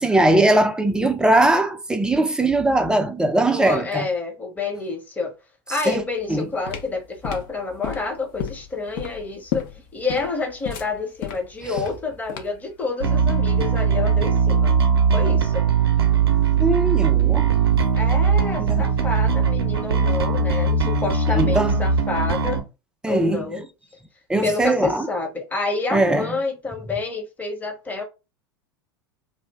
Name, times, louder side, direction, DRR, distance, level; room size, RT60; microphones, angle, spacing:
voice 1, 0.0-4.1 5.9-6.0 6.3-6.4 16.6-17.5 18.6-18.8 21.3-21.8 23.0-23.5 24.3-25.1 25.9-26.3, right 2 dB, 5° right, 0.4 m, -20 dB
voice 2, 3.5-5.3 5.7-14.7 15.1-15.6 18.0-22.7 23.1-23.7 24.4-28.0, left 3 dB, 15° left, 0.9 m, -28 dB
sound 1, 6.2-12.7, left 9 dB, 55° left, 0.6 m, -33 dB
Bass guitar, 13.0-22.6, right 6 dB, 75° right, 0.6 m, -20 dB
2.5 x 2.0 x 3.2 m
figure-of-eight pair, 85°, 13 cm